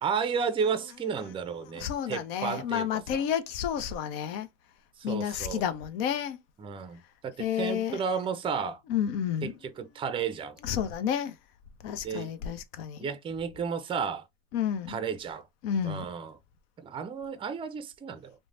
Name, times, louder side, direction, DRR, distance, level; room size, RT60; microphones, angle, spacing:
voice 1, 0.0-2.9 3.1-3.2 5.0-5.6 6.6-8.8 9.4-10.6 12.0-12.3 13.0-14.2 14.9-15.4 15.8-16.3 16.8-18.3, right 6 dB, 20° right, 0.4 m, -32 dB
voice 2, 1.7-4.5 5.0-6.4 7.4-8.0 8.9-9.5 10.6-11.3 11.8-13.1 14.5-15.0 15.6-16.1, left 9 dB, 75° left, 0.6 m, -30 dB
3.1 x 2.1 x 2.6 m
hypercardioid pair, 95°, 30 cm